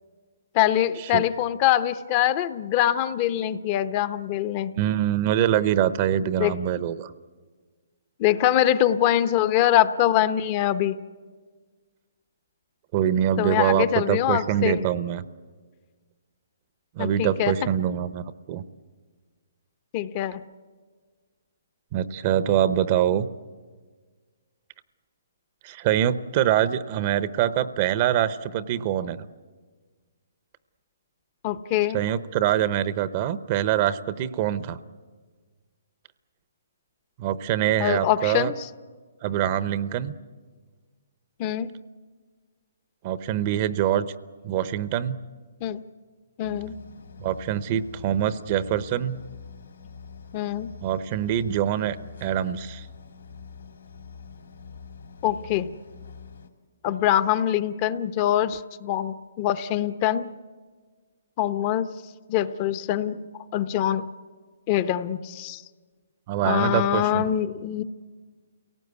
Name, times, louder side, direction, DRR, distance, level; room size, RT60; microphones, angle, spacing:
voice 1, 0.5-4.7 6.4-6.5 8.2-11.0 13.4-14.8 17.0-17.5 19.9-20.4 31.4-32.0 37.8-38.7 41.4-41.7 45.6-45.8 46.4-46.8 50.3-50.7 55.2-55.7 56.8-60.3 61.4-61.9 62.3-63.2 63.5-64.1 64.7-65.6 66.4-67.8, left 12 dB, 35° left, 13 dB, 0.8 m, -24 dB
voice 2, 4.8-7.1 12.9-15.2 17.0-18.2 18.5-18.6 21.9-23.3 25.6-29.2 31.9-34.8 37.2-38.5 39.2-40.1 43.0-44.1 44.4-45.2 47.2-49.2 50.8-52.0 52.2-52.9 66.3-67.2, right 10 dB, 35° right, 15 dB, 0.8 m, -24 dB
sound 1, 46.4-56.5, left 6 dB, 90° left, 2.7 m, -45 dB
28.5 x 18.0 x 8.3 m, 1.5 s
hypercardioid pair, 150°, 0 cm